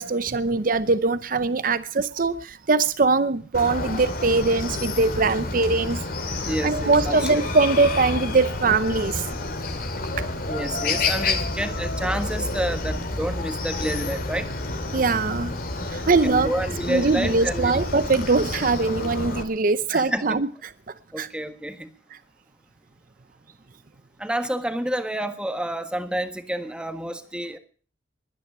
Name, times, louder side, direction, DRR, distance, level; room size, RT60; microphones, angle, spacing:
voice 1, 0.0-6.0 6.4-9.2 10.2-10.3 14.9-15.5 15.9-16.5 16.9-20.5 21.2-21.3, right 3 dB, 50° right, 0.7 m, -22 dB
Chicken rooster, 3.5-19.4, left 2 dB, 55° left, 2.5 m, -29 dB
voice 2, 6.4-7.4 10.5-14.5 15.9-17.8 19.9-20.4 21.1-21.9 24.2-27.6, right 1 dB, 5° right, 1.5 m, -29 dB
22.0 x 9.9 x 6.1 m
head